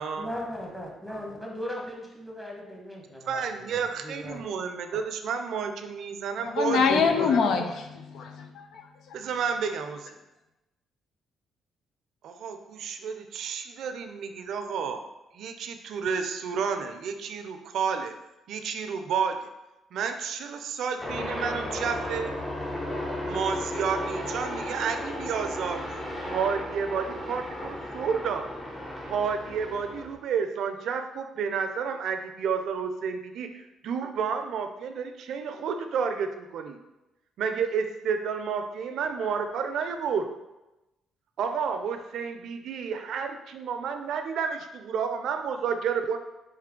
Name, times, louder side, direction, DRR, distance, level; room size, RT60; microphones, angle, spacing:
voice 1, 0.2-4.4 4.9-5.0 6.9-7.0, equal, 5° left, 1.3 m, -37 dB
voice 2, 3.3-7.3 9.1-10.1 12.2-15.0 15.3-18.1 18.5-19.4 19.9-22.3 23.2-25.8 26.2-28.5 29.0-36.8 37.4-40.3 41.4-46.2, right 6 dB, 70° right, 0.4 m, -31 dB
voice 3, 6.5-8.8, left 5 dB, 70° left, 0.5 m, -25 dB
sound 1, 21.0-30.1, left 1 dB, 25° left, 1.1 m, -34 dB
4.3 x 3.2 x 3.7 m
cardioid pair, 85°, 0 cm